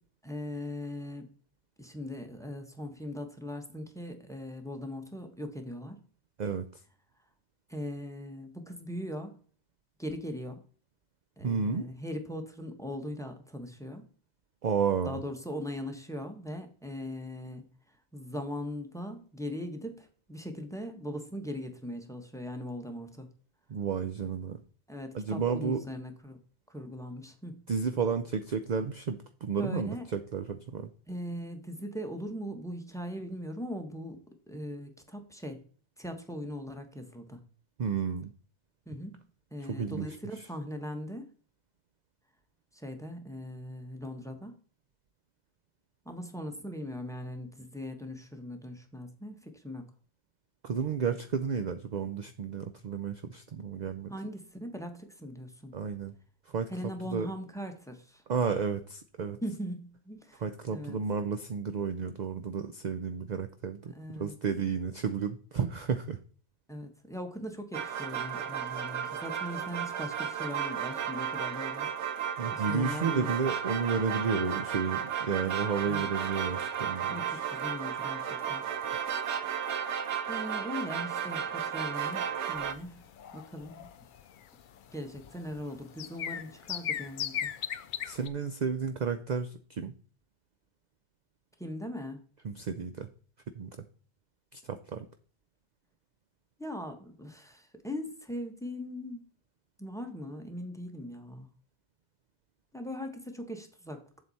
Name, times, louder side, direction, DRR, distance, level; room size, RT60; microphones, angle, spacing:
voice 1, 0.2-1.3 1.8-6.0 7.7-9.4 10.0-10.6 11.4-14.1 15.0-17.7 18.1-23.3 24.9-26.4 26.7-27.6 29.6-30.0 31.1-35.6 36.0-37.4 38.9-39.2 39.5-41.3 42.7-44.5 46.0-49.9 54.1-55.7 56.7-58.2 59.4-60.4 60.7-61.0 63.9-64.3 66.7-71.9 72.5-73.3 75.9-76.1 77.1-78.6 80.3-83.1 83.3-83.9 84.9-87.5 91.6-92.2 96.6-99.2 99.8-101.5 102.7-104.2, left 1 dB, 5° left, 5 dB, 1.2 m, -40 dB
voice 2, 6.4-6.8 11.4-11.9 14.6-15.2 23.7-24.6 25.1-25.8 27.7-30.9 37.8-38.3 39.6-40.1 50.6-54.1 55.7-56.1 56.5-56.7 57.1-57.3 58.3-59.4 60.4-66.2 72.4-77.4 88.0-89.9 92.4-93.1 93.6-93.9 94.5-95.1, right 6 dB, 50° right, 9 dB, 0.6 m, -32 dB
sound 1, 67.7-82.7, right 8 dB, 85° right, 1.1 m, -34 dB
sound 2, 82.5-88.3, left 9 dB, 55° left, 0.6 m, -38 dB
7.7 x 7.4 x 4.1 m, 0.42 s
omnidirectional pair, 1.2 m